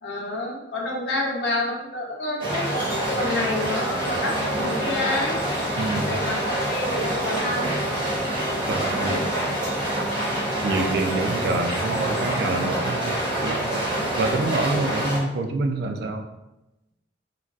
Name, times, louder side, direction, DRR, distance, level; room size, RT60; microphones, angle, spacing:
voice 1, 0.0-5.4 6.0-7.7 8.8-9.2, left 2 dB, 65° left, -2 dB, 0.7 m, -29 dB
sound 1, 2.4-15.2, right 1 dB, 25° right, 0.7 m, -26 dB
voice 2, 5.8-6.2 8.7-9.3 10.6-13.8 14.2-16.2, right 2 dB, 55° right, 5 dB, 0.3 m, -27 dB
3.7 x 2.3 x 2.3 m, 0.93 s
head